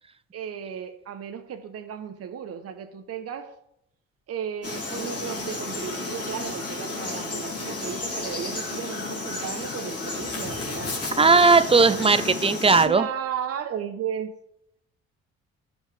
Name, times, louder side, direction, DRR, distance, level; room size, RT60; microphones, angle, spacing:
voice 1, 0.3-3.5 4.3-11.1 12.9-14.3, right 8 dB, 50° right, 7 dB, 0.9 m, -34 dB
Frog, 4.6-12.9, left 3 dB, 50° left, 2.7 m, -32 dB
voice 2, 11.2-13.1, right 4 dB, 20° right, 13 dB, 0.6 m, -17 dB
15.0 x 5.3 x 3.3 m, 0.80 s
supercardioid pair, 60°, 30 cm